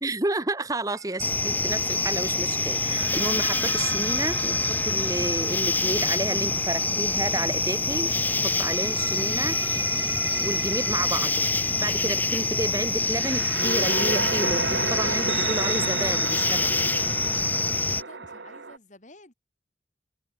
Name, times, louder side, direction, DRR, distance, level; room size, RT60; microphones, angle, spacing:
voice 1, 0.0-8.1 8.4-9.6 10.4-11.4 11.8-16.9, right 2 dB, 20° right, 1.1 m, -31 dB
sound 1, 0.9-1.2 2.7-7.5 8.3-18.8, right 5 dB, 75° right, 1.5 m, -34 dB
sound 2, 1.2-18.0, left 3 dB, 10° left, 0.7 m, -26 dB
voice 2, 18.0-19.3, left 2 dB, 45° left, 4.9 m, -51 dB
head